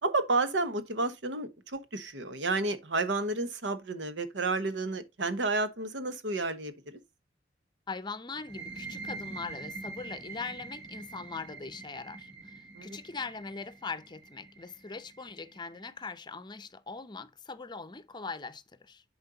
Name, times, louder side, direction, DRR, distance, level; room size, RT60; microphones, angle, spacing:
voice 1, 0.0-7.0 12.7-13.0, right 3 dB, 85° right, 1.1 m, -31 dB
voice 2, 7.9-19.0, left 4 dB, 25° left, 0.6 m, -41 dB
sound 1, 8.4-15.8, right 3 dB, 25° right, 4.5 m, -45 dB
10.5 x 4.5 x 3.8 m
head